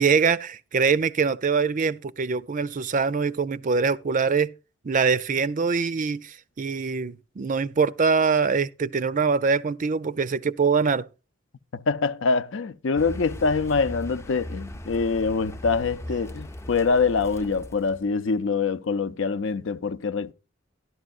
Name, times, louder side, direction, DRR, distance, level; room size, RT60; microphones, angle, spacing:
voice 1, 0.0-4.5 4.8-11.1, right 5 dB, 40° right, 0.5 m, -23 dB
voice 2, 11.7-20.3, left 4 dB, 70° left, 0.6 m, -25 dB
Car, 13.0-18.1, left 1 dB, 15° left, 0.5 m, -38 dB
12.5 x 11.5 x 2.4 m
head